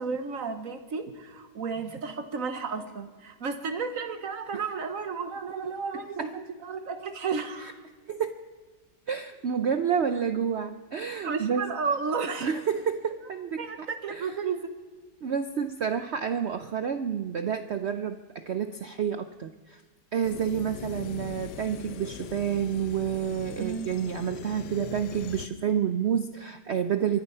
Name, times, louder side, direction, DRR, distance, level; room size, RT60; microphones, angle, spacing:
voice 1, 0.0-7.8 11.2-12.5 13.6-14.7 23.6-23.9, right 5 dB, 55° right, 8 dB, 1.2 m, -33 dB
voice 2, 9.1-11.7 12.4-14.3 15.2-19.8 20.1-27.2, right 8 dB, 70° right, 9 dB, 0.6 m, -29 dB
sound 1, 20.2-25.5, left 9 dB, 75° left, 1.3 m, -41 dB
23.5 x 11.0 x 5.5 m, 1.4 s
omnidirectional pair, 1.9 m